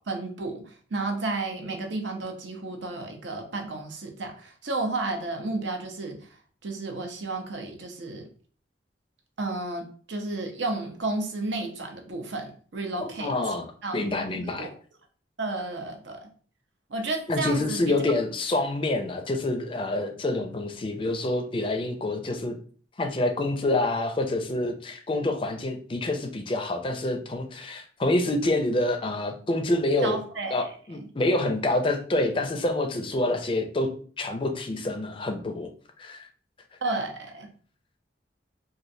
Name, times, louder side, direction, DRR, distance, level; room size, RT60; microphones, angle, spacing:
voice 1, 0.1-6.2 6.6-8.3 9.4-13.3 13.8-14.0 14.3-14.7 15.4-16.3 16.9-17.8 30.0-30.6 36.8-37.5, right 2 dB, 80° right, 3 dB, 0.6 m, -32 dB
voice 2, 13.0-13.7 13.9-14.7 17.3-22.6 23.0-30.2 30.5-33.9 34.2-35.7 36.0-36.3, left 2 dB, 30° left, 6 dB, 0.4 m, -27 dB
3.1 x 2.5 x 2.6 m, 0.44 s
head